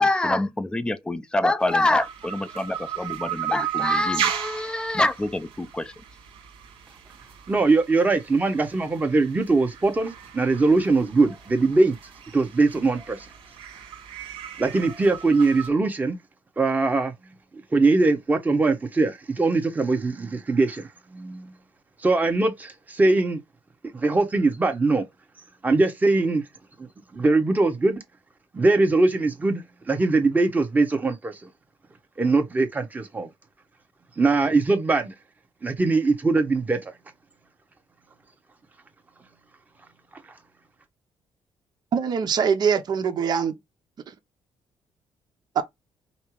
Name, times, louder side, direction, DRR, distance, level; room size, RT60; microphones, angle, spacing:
voice 1, 0.0-5.9, left 2 dB, 10° left, 0.5 m, -25 dB
sound 1, 1.6-15.7, right 10 dB, 70° right, 1.7 m, -35 dB
voice 2, 7.5-12.0 12.3-13.2 14.6-16.2 16.6-17.1 17.7-21.5 22.0-23.4 23.9-25.0 25.6-26.4 26.8-28.0 28.5-29.6 29.9-31.4 32.2-33.3 34.2-35.1 35.6-36.9, right 3 dB, 20° right, 1.1 m, -21 dB
voice 3, 41.9-43.5 45.5-45.6, right 7 dB, 50° right, 0.8 m, -23 dB
5.5 x 2.0 x 4.6 m
cardioid pair, 140°, 9 cm